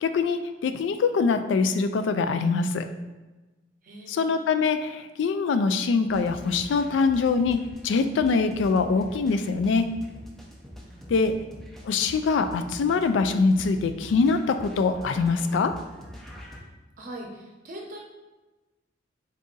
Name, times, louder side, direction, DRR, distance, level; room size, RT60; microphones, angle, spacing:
voice 1, 0.0-2.9 4.1-9.9 11.1-11.4 11.8-15.8, left 4 dB, 65° left, 9 dB, 0.3 m, -24 dB
voice 2, 3.8-4.3 10.9-11.4 16.4-16.6 17.0-18.0, right 1 dB, 45° right, 0 dB, 0.7 m, -42 dB
sound 1, 6.1-16.6, equal, ahead, 0.4 m, -44 dB
3.9 x 2.6 x 3.7 m, 1.1 s
head